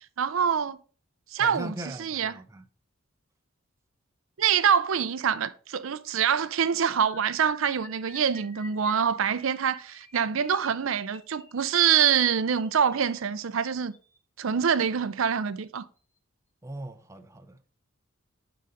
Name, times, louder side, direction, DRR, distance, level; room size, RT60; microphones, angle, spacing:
voice 1, 0.2-0.8 1.3-1.7 2.0-2.3 4.4-13.9 14.4-15.9, right 7 dB, 70° right, 0.5 m, -25 dB
voice 2, 1.4-2.6 16.6-17.6, right 1 dB, 15° right, 0.5 m, -40 dB
sound 1, 7.0-14.2 14.9-15.2 15.5-15.7 16.0-16.2, left 1 dB, 10° left, 1.2 m, -53 dB
9.2 x 3.9 x 5.3 m
head